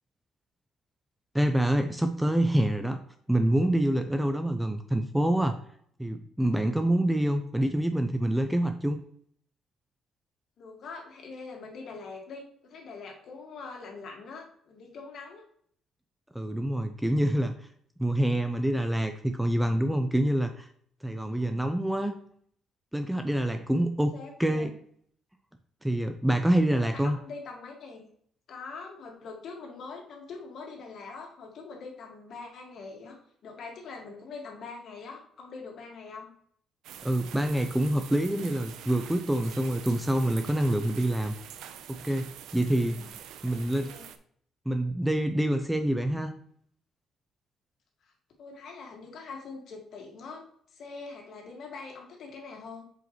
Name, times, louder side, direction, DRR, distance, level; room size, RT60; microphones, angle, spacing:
voice 1, 1.3-3.0 3.3-5.6 6.0-9.0 16.3-17.6 18.0-20.7 21.0-22.1 22.9-24.7 25.8-27.2 37.0-41.3 41.9-43.1 43.4-43.9 44.7-46.3, right 1 dB, 5° right, 7 dB, 0.4 m, -26 dB
voice 2, 10.6-15.4 21.2-21.7 23.9-24.7 26.7-28.0 28.5-36.3 42.7-43.1 43.5-44.1 48.0-48.1 48.4-50.4 50.7-52.8, left 4 dB, 50° left, 1 dB, 1.8 m, -43 dB
sound 1, 36.8-44.2, right 9 dB, 90° right, 0.6 m, -45 dB
7.8 x 5.0 x 3.1 m, 0.63 s
cardioid pair, 160°, 0 cm